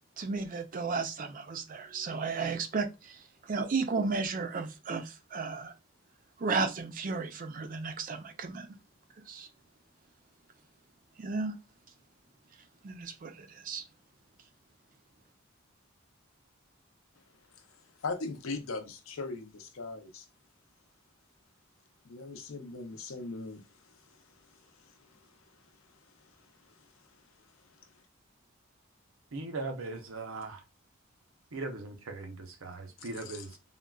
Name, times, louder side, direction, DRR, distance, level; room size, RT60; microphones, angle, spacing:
voice 1, 0.2-5.7 6.4-8.7 9.3-9.5 11.2-11.5 12.8-13.8, right 4 dB, 40° right, 0.4 m, -34 dB
voice 2, 18.0-20.3 22.0-23.6 24.8-24.9 33.0-33.6, left 3 dB, 85° left, 0.6 m, -39 dB
voice 3, 29.3-30.6 31.5-33.5, right 3 dB, 90° right, 0.7 m, -39 dB
3.6 x 2.2 x 2.2 m
head